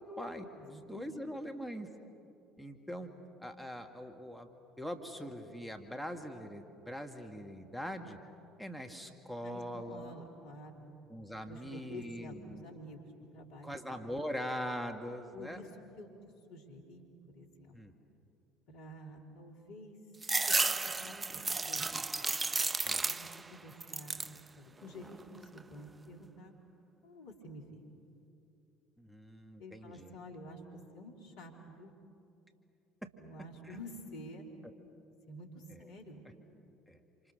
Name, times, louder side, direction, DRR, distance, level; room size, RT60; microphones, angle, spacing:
voice 1, 0.0-1.9 2.6-3.1 3.4-4.5 4.8-8.2 8.6-10.1 11.1-12.6 13.6-15.6 17.7-17.9 22.8-23.0 29.0-30.1 33.6-33.8 36.9-37.0, equal, ahead, 5 dB, 2.0 m, -42 dB
voice 2, 0.5-1.2 9.4-11.0 11.5-13.7 15.3-15.7 16.0-16.1 16.5-18.0 18.7-20.0 20.5-20.6 20.8-21.9 23.0-26.5 27.0-27.8 29.6-32.0 33.2-34.5 35.3-36.3, left 1 dB, 65° left, 1 dB, 3.6 m, -50 dB
sound 1, 20.2-23.5 23.8-24.4 24.9-25.6, right 3 dB, 20° right, 0.6 m, -33 dB
27.5 x 27.5 x 6.6 m, 2.7 s
figure-of-eight pair, 60°, 0 cm